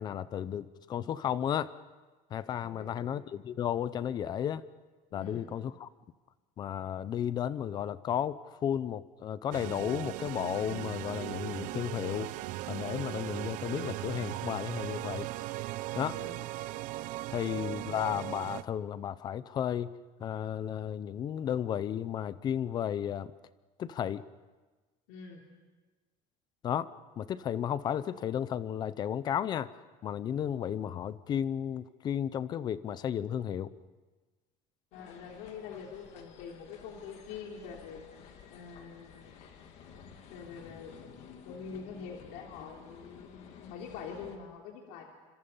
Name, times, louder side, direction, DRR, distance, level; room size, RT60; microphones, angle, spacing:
voice 1, 0.0-1.7 2.3-4.6 5.1-5.9 6.6-12.3 12.7-15.3 15.9-16.2 17.3-19.9 20.2-23.3 23.8-24.2 26.6-26.9 27.2-29.7 30.0-33.7, left 9 dB, 30° left, 16 dB, 0.7 m, -33 dB
voice 2, 2.6-3.1 5.1-5.5 16.1-16.5 25.1-25.4 34.9-38.1 38.5-39.3 40.3-42.8 43.7-45.0, left 6 dB, 75° left, 1 dB, 3.2 m, -45 dB
sound 1, 9.5-18.6, right 17 dB, 55° right, 0.7 m, -38 dB
sound 2, 34.9-44.4, left 7 dB, 50° left, 2.4 m, -52 dB
28.0 x 26.0 x 5.6 m, 1.3 s
cardioid pair, 180°, 15 cm